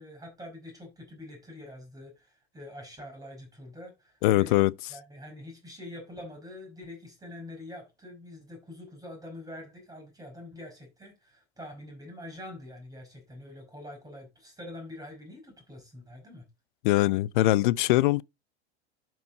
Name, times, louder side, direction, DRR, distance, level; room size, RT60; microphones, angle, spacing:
voice 1, 0.0-4.6 4.9-16.4, left 1 dB, 10° right, 5.0 m, -45 dB
voice 2, 4.2-4.7 16.8-18.2, left 17 dB, 50° left, 0.5 m, -22 dB
12.0 x 4.7 x 3.9 m
figure-of-eight pair, 90°, 34 cm